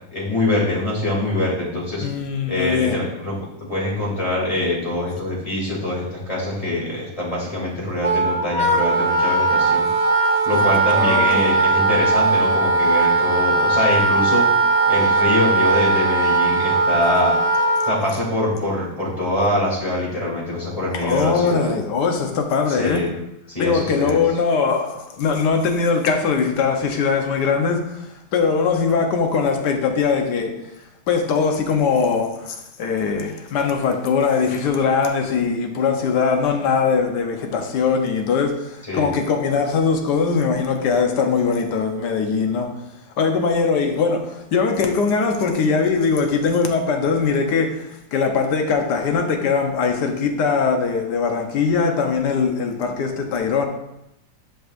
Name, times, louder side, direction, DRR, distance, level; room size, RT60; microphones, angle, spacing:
voice 1, 0.1-2.1 2.5-9.9 10.4-14.5 14.9-17.3 17.9-21.7 22.7-23.1 23.5-24.3 38.8-39.1, left 1 dB, 15° left, -5 dB, 2.8 m, -24 dB
voice 2, 2.0-3.0 10.9-11.6 20.9-23.0 23.6-30.5 31.1-42.7 43.2-53.7, left 5 dB, 65° left, 4 dB, 1.5 m, -21 dB
Wind instrument woodwind instrument, 8.0-18.0, right 3 dB, 55° right, 0.4 m, -18 dB
11.5 x 5.3 x 2.6 m, 0.86 s
omnidirectional pair, 2.0 m